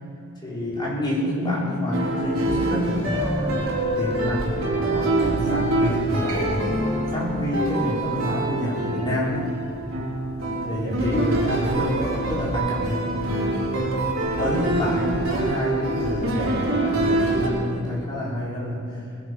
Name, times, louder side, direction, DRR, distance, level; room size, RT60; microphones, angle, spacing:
voice 1, 0.4-6.6 7.1-9.4 10.6-13.1 13.7-13.8 14.4-18.8, left 1 dB, 20° left, -6 dB, 4.8 m, -28 dB
sound 1, 1.9-17.5, right 2 dB, 70° right, 4.4 m, -25 dB
21.0 x 11.0 x 5.4 m, 2.6 s
head